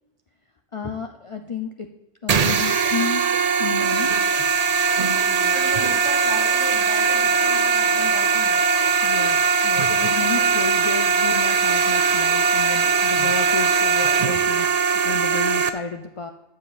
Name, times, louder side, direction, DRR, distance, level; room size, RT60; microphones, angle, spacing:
voice 1, 0.7-1.9 2.2-3.3 3.6-4.1 9.0-9.4 9.6-16.3, left 5 dB, 40° left, 6 dB, 0.4 m, -31 dB
sound 1, 2.3-15.7, right 5 dB, 45° right, 0.5 m, -20 dB
voice 2, 5.0-8.6, right 2 dB, 20° right, -1 dB, 2.1 m, -36 dB
13.0 x 7.3 x 4.1 m, 1.0 s
omnidirectional pair, 1.3 m